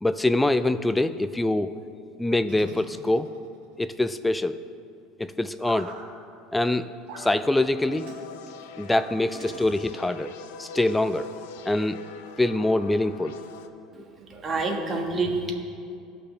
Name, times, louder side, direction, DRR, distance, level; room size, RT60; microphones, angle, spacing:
voice 1, 0.0-1.7 2.2-3.3 3.8-4.6 5.2-5.9 6.5-6.9 7.2-8.1 8.8-11.3 11.7-12.0 12.4-13.4, left 2 dB, 10° left, 12 dB, 0.4 m, -24 dB
Cartoonish Dynamics, 2.5-3.7 5.6-6.0 7.1-7.3 8.0-8.3 9.3-10.2, right 4 dB, 80° right, 1.8 m, -44 dB
sound 1, 7.1-13.7, left 4 dB, 85° left, 0.7 m, -43 dB
voice 2, 13.9-15.5, right 3 dB, 30° right, 2 dB, 1.5 m, -28 dB
17.0 x 5.9 x 3.2 m, 2.4 s
supercardioid pair, 115°, 0 cm